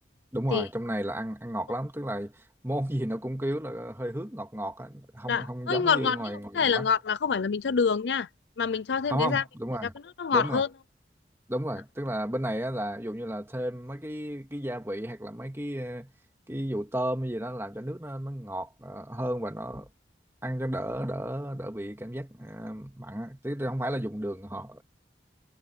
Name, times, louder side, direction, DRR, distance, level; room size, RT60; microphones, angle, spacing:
voice 1, 0.3-6.9 9.1-9.9 10.3-10.6 11.5-16.1 16.5-19.9 20.4-24.8, right 1 dB, 15° right, 2.2 m, -33 dB
voice 2, 5.3-6.2 6.5-8.3 8.6-9.4 10.2-10.7, left 6 dB, 90° left, 0.5 m, -26 dB
head